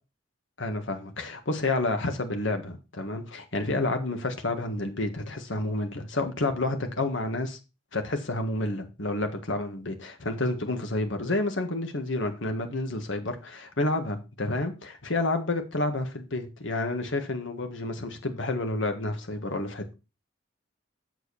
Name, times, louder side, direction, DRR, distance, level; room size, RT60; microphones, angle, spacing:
voice 1, 0.6-7.6 7.9-19.9, left 2 dB, 80° left, 1.7 m, -30 dB
7.9 x 6.7 x 4.2 m
head